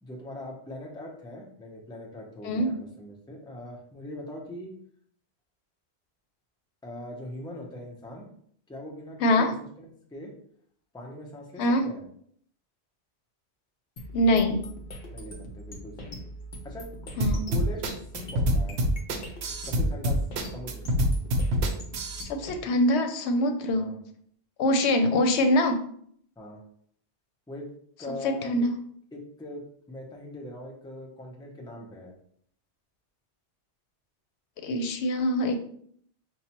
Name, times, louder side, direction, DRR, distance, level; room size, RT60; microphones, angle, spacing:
voice 1, 0.0-4.7 6.8-8.3 8.7-9.5 9.8-10.3 10.9-12.0 15.1-16.2 16.6-17.1 17.5-17.8 18.1-18.8 19.6-20.9 23.7-24.0 26.4-26.6 27.5-27.6 28.0-28.7 29.1-29.6 29.9-32.1, left 1 dB, 5° left, 0 dB, 0.4 m, -41 dB
voice 2, 9.2-9.5 11.6-11.8 14.1-14.6 17.2-17.4 22.2-23.9 24.6-25.8 28.2-28.8 34.6-35.6, left 1 dB, 85° left, 6 dB, 0.9 m, -24 dB
sound 1, 14.0-22.6, equal, 50° left, 0.7 m, -42 dB
sound 2, 17.2-22.3, equal, 75° right, 0.8 m, -25 dB
5.3 x 2.1 x 2.9 m, 0.63 s
omnidirectional pair, 1.1 m